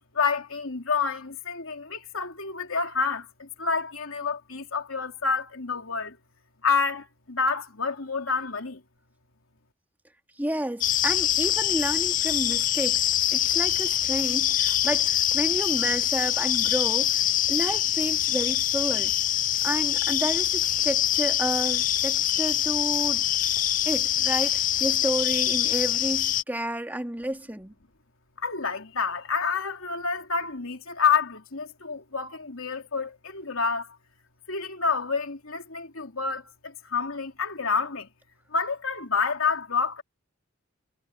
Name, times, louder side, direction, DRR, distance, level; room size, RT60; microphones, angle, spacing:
voice 1, 0.1-6.2 6.6-8.8 28.4-33.9 34.5-38.1 38.5-40.0, left 5 dB, 85° left, 3.2 m, -28 dB
voice 2, 10.4-19.1 19.6-23.2 23.9-27.7, right 1 dB, 10° right, 2.2 m, -31 dB
sound 1, 10.8-26.4, left 12 dB, 40° left, 0.5 m, -24 dB
head